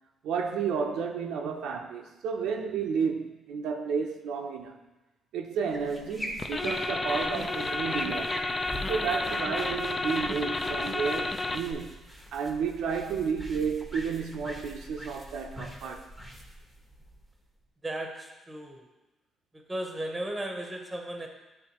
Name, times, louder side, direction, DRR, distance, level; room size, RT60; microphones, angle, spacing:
voice 1, 0.2-4.8 5.3-8.4 8.9-12.0 12.3-16.1, right 6 dB, 85° right, 2 dB, 0.6 m, -32 dB
sound 1, 5.6-17.6, equal, 5° left, 1.1 m, -43 dB
sound 2, 6.4-11.7, left 2 dB, 30° left, 0.4 m, -31 dB
voice 2, 17.8-18.8 19.5-21.3, right 1 dB, 15° right, 2 dB, 0.9 m, -35 dB
9.7 x 3.3 x 2.9 m, 1.1 s
cardioid pair, 90°, 0 cm